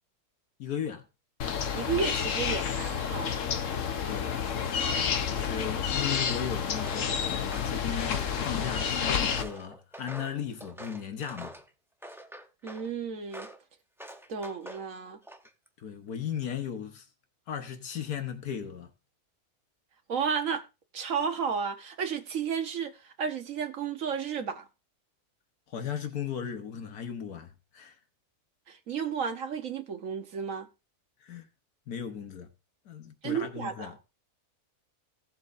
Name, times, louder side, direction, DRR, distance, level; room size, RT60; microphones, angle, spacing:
voice 1, 0.6-1.0 4.0-4.4 5.3-11.6 15.8-17.1 17.5-18.9 25.7-28.0 31.2-31.5 31.9-32.5 32.8-34.0, left 8 dB, 85° left, 1.7 m, -36 dB
sound 1, 1.4-9.4, left 7 dB, 60° left, 1.2 m, -30 dB
voice 2, 1.7-3.4 12.6-13.5 14.3-15.2 20.1-20.6 20.9-24.7 28.7-30.7 33.2-33.9, right 6 dB, 60° right, 1.6 m, -32 dB
Walk footsteps, 6.7-7.1 7.5-9.0 9.4-11.7 12.0-12.9 13.3-13.6 14.0-14.9 15.2-15.7, right 1 dB, ahead, 0.6 m, -45 dB
17.0 x 7.6 x 2.6 m
omnidirectional pair, 1.6 m